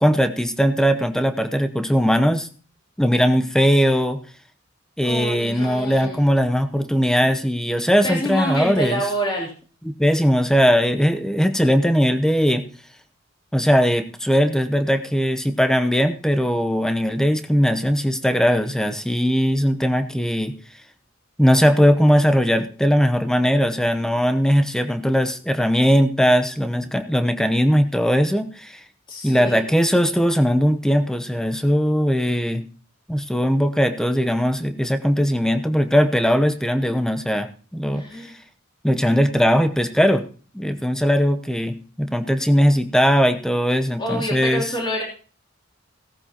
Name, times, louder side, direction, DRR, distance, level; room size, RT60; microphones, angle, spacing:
voice 1, 0.0-2.5 3.0-4.2 5.0-9.0 9.9-12.6 13.5-20.6 21.4-28.8 29.2-32.7 33.1-38.3 38.8-40.2 40.5-44.6, equal, 5° left, 9 dB, 0.8 m, -19 dB
voice 2, 5.0-6.2 8.0-9.5 29.1-29.7 37.9-38.4 44.0-45.0, equal, 20° left, -3 dB, 3.1 m, -27 dB
17.5 x 13.0 x 2.9 m, 0.40 s
head